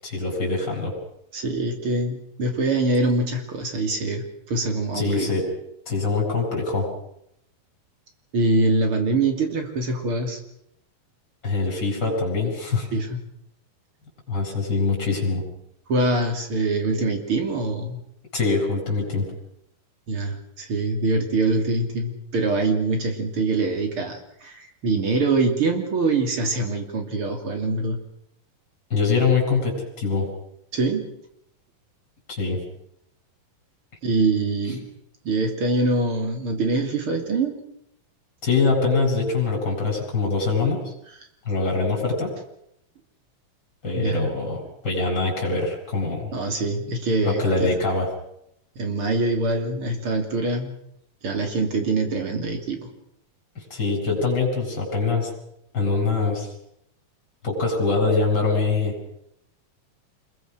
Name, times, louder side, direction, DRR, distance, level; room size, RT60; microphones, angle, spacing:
voice 1, 0.0-0.9 4.9-5.4 5.9-6.9 11.4-12.9 14.3-15.4 18.3-19.3 28.9-30.3 32.3-32.6 38.4-40.9 41.4-42.3 43.8-46.3 47.2-48.1 53.5-55.3 55.7-56.5 57.4-59.0, left 4 dB, 25° left, 0 dB, 8.4 m, -23 dB
voice 2, 1.3-5.3 8.3-10.4 12.9-13.2 15.9-18.0 20.1-28.0 30.7-31.1 34.0-34.9 35.2-37.6 44.0-44.3 46.3-47.7 48.7-50.7 51.2-52.9, right 2 dB, 40° right, 4 dB, 3.5 m, -24 dB
26.5 x 22.5 x 6.4 m, 0.76 s
omnidirectional pair, 4.1 m